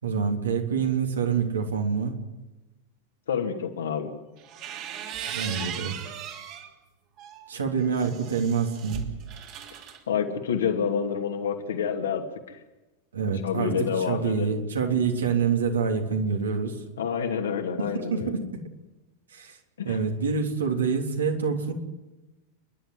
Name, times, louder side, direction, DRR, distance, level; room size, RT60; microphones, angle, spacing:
voice 1, 0.0-2.1 5.3-6.0 7.5-9.1 13.1-16.8 17.8-18.6 19.3-19.6 19.8-21.7, right 5 dB, 70° right, 3 dB, 3.4 m, -26 dB
voice 2, 3.3-4.1 10.1-12.6 13.4-14.5 17.0-18.4 19.8-20.0, left 7 dB, 65° left, 4 dB, 2.7 m, -28 dB
sound 1, 4.4-6.7 7.2-10.0, right 9 dB, 40° right, 3.1 m, -38 dB
29.0 x 11.5 x 9.8 m, 1.1 s
figure-of-eight pair, 90°, 0 cm